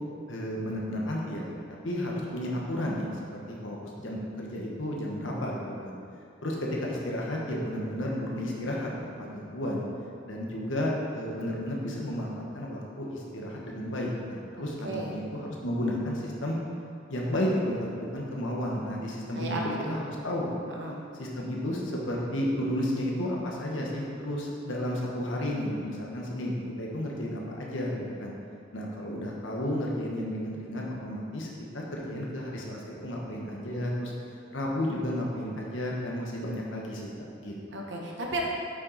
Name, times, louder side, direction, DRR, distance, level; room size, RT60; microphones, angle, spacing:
voice 1, 0.3-1.4 1.8-3.1 3.6-5.9 6.4-9.8 10.3-16.6 17.1-19.6 19.9-20.5 21.2-28.3 28.7-31.5 31.7-34.1 34.5-37.5, left 1 dB, 70° left, -2 dB, 1.4 m, -32 dB
voice 2, 14.8-15.1 19.4-20.0 20.7-21.0 37.7-38.4, right 2 dB, 65° right, -1 dB, 1.2 m, -34 dB
8.1 x 6.0 x 4.2 m, 2.4 s
head